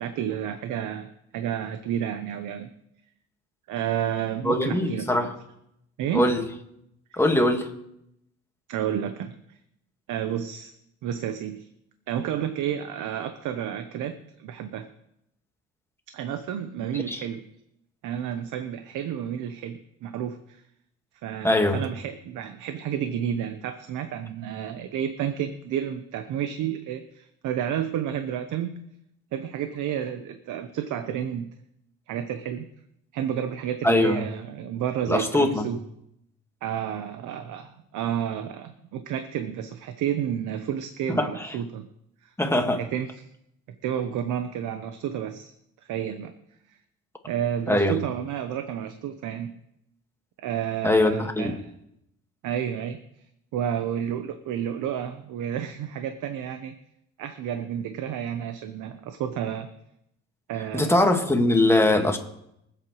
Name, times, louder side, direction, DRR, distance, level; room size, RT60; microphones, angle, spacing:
voice 1, 0.0-2.7 3.7-5.3 6.0-6.3 7.1-7.2 8.7-9.6 10.1-10.7 11.0-11.7 12.1-14.9 16.1-17.4 18.0-20.6 21.2-28.7 29.3-31.5 32.1-32.7 33.1-35.8 36.6-41.9 42.2-42.3 42.7-43.3 43.8-45.5 45.8-46.3 47.3-49.5 50.4-51.7 52.4-53.0 53.5-56.7 57.2-59.7 60.5-60.9 61.8-62.1, right 9 dB, 85° right, 8 dB, 0.9 m, -31 dB
voice 2, 4.4-5.3 6.1-6.4 7.1-7.7 17.1-17.2 21.4-21.8 33.8-34.2 35.1-35.6 41.2-41.3 42.4-42.8 47.7-48.0 50.8-51.6 60.7-62.2, left 1 dB, 10° left, 4 dB, 1.7 m, -21 dB
24.0 x 8.1 x 3.1 m, 0.78 s
cardioid pair, 90°, 30 cm